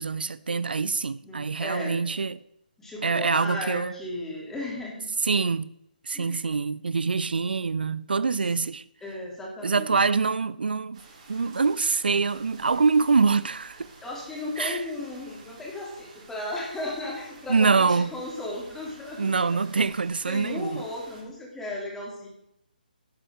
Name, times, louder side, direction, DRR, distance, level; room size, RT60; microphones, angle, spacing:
voice 1, 0.0-2.4 3.0-3.9 5.2-5.7 6.0-8.8 9.6-11.0 11.3-13.9 14.6-14.8 17.5-18.1 19.2-20.8, right 4 dB, 80° right, 0.5 m, -25 dB
voice 2, 1.2-2.0 2.8-5.1 6.1-6.4 9.0-9.9 14.0-19.6 20.2-22.3, left 2 dB, 5° left, 3.2 m, -35 dB
sound 1, 10.9-21.2, right 3 dB, 45° right, 4.6 m, -51 dB
11.5 x 7.8 x 6.6 m
figure-of-eight pair, 150°, 5 cm